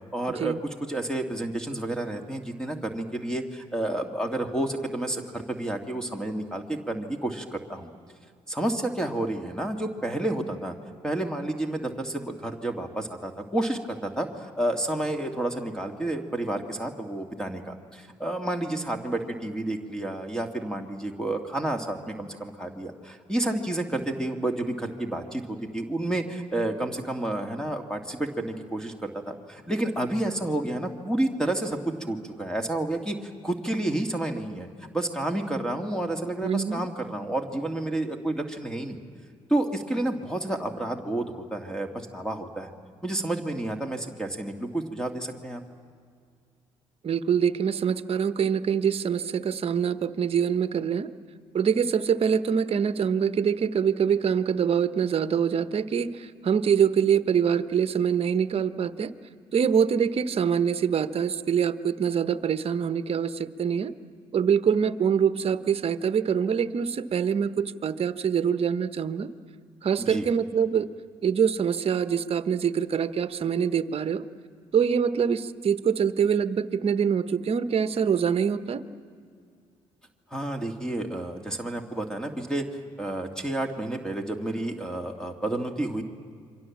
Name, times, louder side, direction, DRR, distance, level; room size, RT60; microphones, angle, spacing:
voice 1, 0.1-7.9 8.5-10.7 11.0-31.8 32.1-34.7 34.9-39.0 39.5-42.7 43.0-45.6 70.0-70.3 80.3-86.0, right 1 dB, 5° left, 4 dB, 2.4 m, -30 dB
voice 2, 36.4-36.8 47.0-51.1 51.5-59.1 59.5-63.9 64.3-69.3 69.8-70.9 71.2-74.2 74.7-78.8, right 7 dB, 45° right, 12 dB, 1.1 m, -24 dB
28.0 x 24.5 x 7.4 m, 2.2 s
hypercardioid pair, 55°, 13 cm